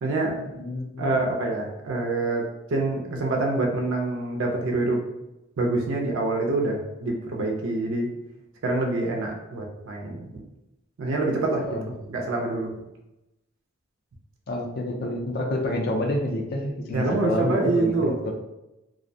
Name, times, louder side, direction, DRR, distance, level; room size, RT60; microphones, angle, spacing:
voice 1, 0.0-0.4 1.0-2.4 2.7-5.0 5.6-8.1 8.6-10.4 11.0-12.7 16.9-18.2, right 2 dB, 65° right, 0 dB, 0.4 m, -26 dB
voice 2, 0.5-1.1 11.6-11.9 14.5-18.3, left 1 dB, 45° left, 2 dB, 0.4 m, -28 dB
2.4 x 2.0 x 2.6 m, 0.93 s
head